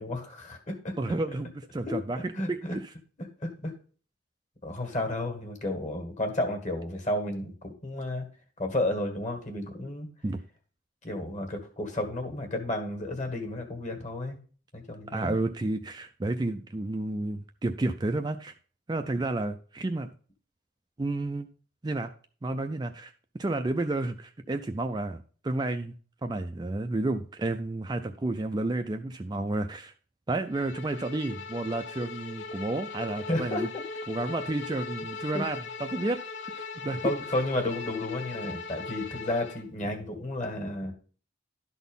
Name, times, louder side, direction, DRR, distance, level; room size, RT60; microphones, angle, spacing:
voice 1, 0.0-0.9 1.9-2.0 2.3-2.8 3.2-3.7 4.6-8.3 8.6-10.1 11.0-14.4 14.7-15.4 33.3-33.6 35.3-35.4 37.0-40.9, left 1 dB, 35° left, 4 dB, 1.8 m, -32 dB
voice 2, 1.0-2.8 10.2-10.4 15.1-18.5 18.9-20.1 21.0-21.5 21.8-22.1 22.4-23.1 23.4-25.2 25.4-25.9 26.2-29.9 30.3-33.7 34.1-36.2 36.5-37.1, right 2 dB, 20° right, 6 dB, 0.3 m, -31 dB
Bowed string instrument, 30.5-39.6, left 4 dB, 60° left, 0.7 m, -39 dB
11.5 x 4.1 x 5.4 m, 0.41 s
head